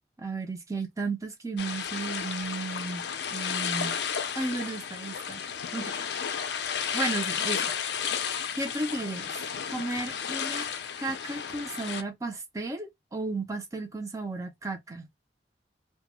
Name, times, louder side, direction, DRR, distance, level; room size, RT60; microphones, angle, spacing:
voice 1, 0.2-4.0 4.3-5.4 5.7-5.9 6.9-7.7 8.6-9.3 9.7-10.7 11.0-15.1, right 3 dB, 20° right, 0.4 m, -34 dB
sound 1, 1.6-12.0, left 7 dB, 70° left, 0.4 m, -33 dB
2.2 x 2.0 x 2.8 m
head